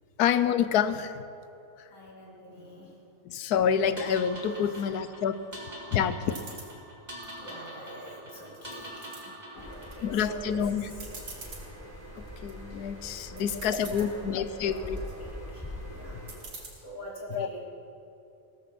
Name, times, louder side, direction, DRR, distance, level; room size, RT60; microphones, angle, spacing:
voice 1, 0.2-1.2 1.8-1.9 3.2-5.4 5.9-6.4 10.0-10.9 12.1-15.0 17.3-17.5, left 8 dB, 85° left, 13 dB, 1.3 m, -28 dB
voice 2, 1.9-3.0 4.7-4.9 7.3-9.2 9.4-11.6 13.3-17.6, equal, 65° left, -3 dB, 3.2 m, -45 dB
sound 1, 4.0-10.2, equal, 30° right, 2.7 m, -44 dB
sound 2, 6.3-6.7 7.2-8.0 8.4-9.2 9.7-10.2 10.5-10.6 10.9-11.6 12.2-12.5 13.1-13.2 13.4-14.1 14.6-15.1 16.3-16.7, right 3 dB, 80° right, 3.0 m, -45 dB
sound 3, 9.6-16.4, left 1 dB, 10° left, 5.0 m, -43 dB
17.0 x 14.0 x 6.1 m, 2.8 s
omnidirectional pair, 1.6 m